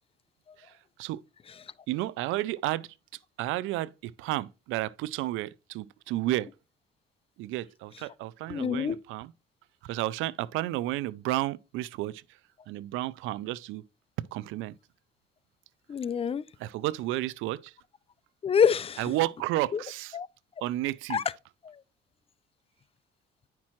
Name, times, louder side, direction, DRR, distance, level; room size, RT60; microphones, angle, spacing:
voice 1, 1.9-2.9 3.4-6.5 7.4-9.3 9.8-12.2 12.7-13.8 14.3-14.7 16.6-17.7 19.0-20.2 20.6-21.2, right 16 dB, 85° right, 0.4 m, -32 dB
voice 2, 8.5-9.0 15.9-16.4 18.4-19.1 19.7-19.8 20.1-20.3 21.1-21.2 21.6-21.8, left 7 dB, 30° left, 0.4 m, -26 dB
9.6 x 5.9 x 3.0 m
cardioid pair, 105°, 20 cm